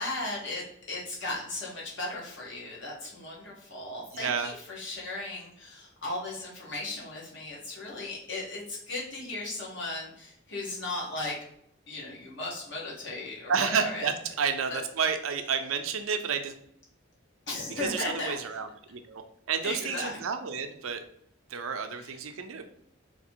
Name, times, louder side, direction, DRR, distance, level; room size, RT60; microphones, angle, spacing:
voice 1, 0.0-11.4 11.9-14.1 14.7-14.8 17.5-18.3 19.6-20.2, left 2 dB, 60° left, -4 dB, 1.4 m, -36 dB
voice 2, 4.2-4.5 13.5-16.5 17.8-19.2 19.5-21.0 21.5-22.6, right 6 dB, 80° right, 8 dB, 0.5 m, -30 dB
3.2 x 2.9 x 4.4 m, 0.71 s
head